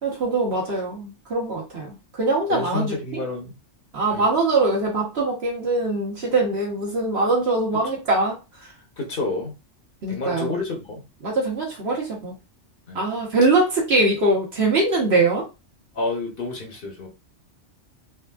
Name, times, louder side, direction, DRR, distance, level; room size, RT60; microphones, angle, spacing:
voice 1, 0.0-3.2 3.9-8.4 10.0-10.5 11.2-12.4 12.9-15.4, right 2 dB, 60° right, -3 dB, 1.2 m, -22 dB
voice 2, 2.5-3.5 4.1-4.2 9.0-9.5 10.1-11.0 12.9-13.0 15.9-17.1, left 3 dB, 50° left, 1 dB, 1.0 m, -29 dB
3.5 x 2.4 x 2.3 m, 0.27 s
omnidirectional pair, 1.2 m